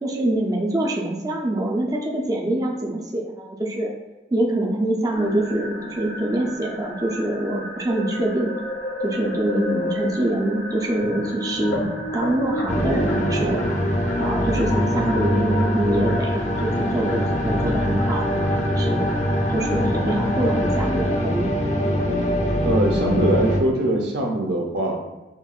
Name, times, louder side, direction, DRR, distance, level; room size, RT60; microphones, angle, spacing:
voice 1, 0.0-3.9 4.3-8.5 9.0-11.8 12.1-13.6 14.2-19.1 19.5-21.5, right 1 dB, 20° right, -1 dB, 0.4 m, -25 dB
sound 1, 5.1-21.1, left 1 dB, 90° left, 0.8 m, -33 dB
sound 2, 12.7-23.6, equal, 40° left, 0.5 m, -23 dB
voice 2, 22.7-24.9, right 1 dB, 75° right, 2 dB, 0.6 m, -22 dB
5.1 x 2.9 x 2.3 m, 1.1 s
head